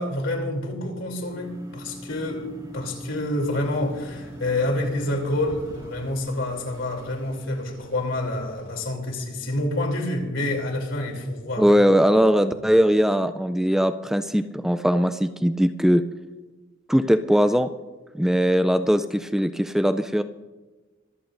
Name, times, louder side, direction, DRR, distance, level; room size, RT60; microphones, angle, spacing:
voice 1, 0.0-11.7, left 1 dB, 70° left, 3.0 m, -28 dB
sound 1, 1.3-7.4, equal, 20° right, 2.8 m, -42 dB
sound 2, 3.6-8.9, left 1 dB, 55° left, 5.6 m, -51 dB
voice 2, 11.6-16.0 16.9-17.7 18.1-20.2, equal, ahead, 0.3 m, -20 dB
24.5 x 14.0 x 2.6 m
head